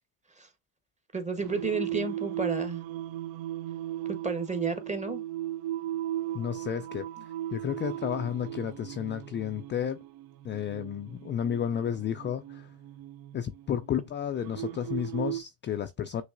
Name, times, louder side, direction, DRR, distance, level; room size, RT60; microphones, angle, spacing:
voice 1, 1.1-2.8 4.2-5.2, right 3 dB, 15° right, 1.0 m, -32 dB
Singing, 1.4-15.4, right 13 dB, 55° right, 0.5 m, -37 dB
voice 2, 6.3-7.1 7.5-10.0 10.4-12.7 13.3-16.2, left 9 dB, 25° left, 0.3 m, -32 dB
6.1 x 2.6 x 2.5 m
hypercardioid pair, 75°, 46 cm